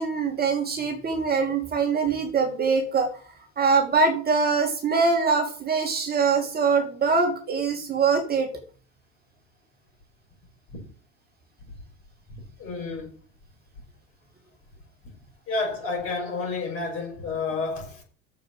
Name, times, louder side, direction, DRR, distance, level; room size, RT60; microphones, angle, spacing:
voice 1, 0.0-3.1 3.6-8.5, right 4 dB, 25° right, 2.6 m, -23 dB
voice 2, 12.6-13.1 15.0-15.1 15.5-18.0, left 4 dB, 40° left, 6.1 m, -30 dB
9.0 x 7.5 x 6.8 m
figure-of-eight pair, 75°, 37 cm